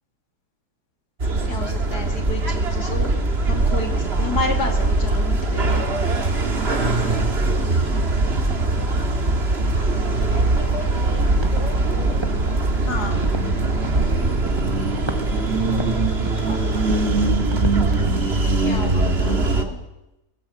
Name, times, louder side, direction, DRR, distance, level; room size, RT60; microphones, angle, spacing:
sound 1, 1.2-19.6, right 2 dB, 40° right, 2.2 m, -21 dB
voice 1, 1.4-3.1 3.5-5.9 12.8-13.2 18.6-19.8, left 3 dB, 85° left, 4 dB, 2.9 m, -30 dB
voice 2, 10.3-12.6 16.2-16.7, left 2 dB, 20° left, 2 dB, 5.1 m, -38 dB
sound 2, 11.0-18.4, right 2 dB, 20° right, 1.2 m, -37 dB
23.5 x 18.0 x 7.8 m, 0.95 s
omnidirectional pair, 1.7 m